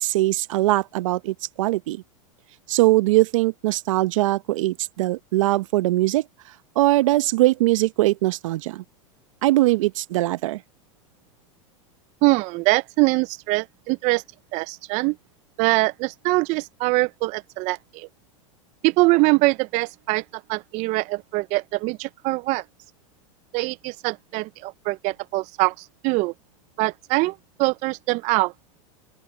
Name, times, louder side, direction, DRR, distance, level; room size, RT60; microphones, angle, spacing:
voice 1, 0.0-2.0 2.7-6.2 6.8-8.8 9.4-10.6, right 17 dB, 70° right, 1.0 m, -21 dB
voice 2, 12.2-14.2 14.5-15.2 15.6-18.1 18.8-22.6 23.5-26.3 26.8-28.5, right 24 dB, 45° right, 0.4 m, -23 dB
open air
hypercardioid pair, 110°, 17 cm